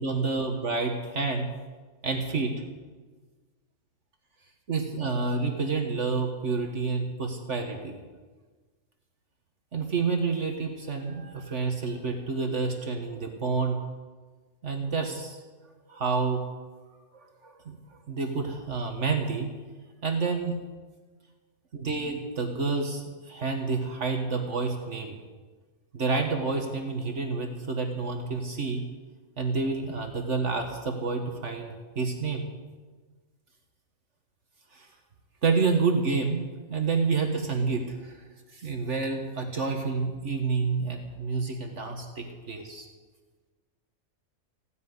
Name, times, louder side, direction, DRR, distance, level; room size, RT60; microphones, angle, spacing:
voice 1, 0.0-1.5 2.0-2.5 4.7-8.0 9.7-13.8 14.6-15.4 15.9-16.4 16.9-17.0 17.4-17.8 18.1-19.5 20.0-20.6 21.7-25.2 25.9-28.9 29.4-32.4 34.7-34.9 35.4-36.4 36.7-38.2 38.5-42.9, right 4 dB, 60° right, 3 dB, 1.8 m, -29 dB
16.0 x 9.4 x 9.5 m, 1.4 s
omnidirectional pair, 1.4 m